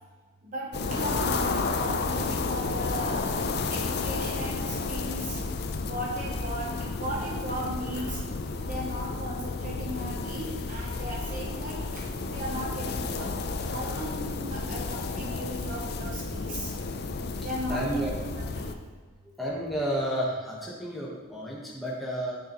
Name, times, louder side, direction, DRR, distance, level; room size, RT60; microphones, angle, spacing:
voice 1, 0.4-3.3 3.7-5.4 5.8-8.2 8.7-16.7 17.4-18.0 18.5-18.7, right 1 dB, 40° right, -2 dB, 0.9 m, -36 dB
sound 1, 0.7-18.7, left 3 dB, 50° left, 0.5 m, -32 dB
voice 2, 17.1-18.1 19.4-22.4, right 1 dB, ahead, -6 dB, 1.2 m, -32 dB
10.0 x 6.6 x 3.0 m, 1.4 s
head